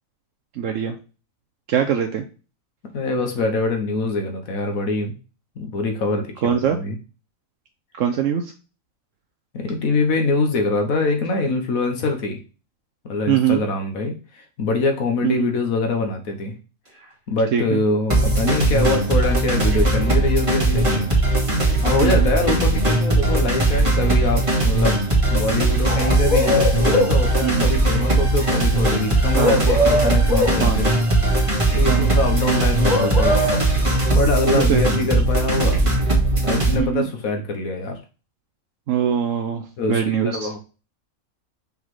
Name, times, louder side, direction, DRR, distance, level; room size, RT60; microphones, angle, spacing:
voice 1, 0.6-0.9 1.7-2.2 6.4-6.8 8.0-8.4 13.3-13.6 15.2-15.5 17.5-17.8 22.0-22.3 27.4-27.7 29.4-29.6 30.6-30.8 31.9-32.1 34.5-34.8 36.8-37.1 38.9-40.5, right 9 dB, 70° right, 6 dB, 1.1 m, -22 dB
voice 2, 2.9-5.1 5.6-6.9 9.5-12.4 13.0-16.5 17.3-21.1 21.8-25.0 25.3-30.9 31.7-33.5 34.1-35.8 36.4-38.0 39.8-40.6, left 3 dB, 90° left, 4 dB, 1.6 m, -24 dB
sound 1, 18.1-36.8, right 2 dB, 25° right, 2.0 m, -19 dB
sound 2, 25.9-27.2 29.4-30.6 32.9-33.6, left 1 dB, 65° left, 2.2 m, -21 dB
5.5 x 3.9 x 4.6 m, 0.33 s
omnidirectional pair, 1.4 m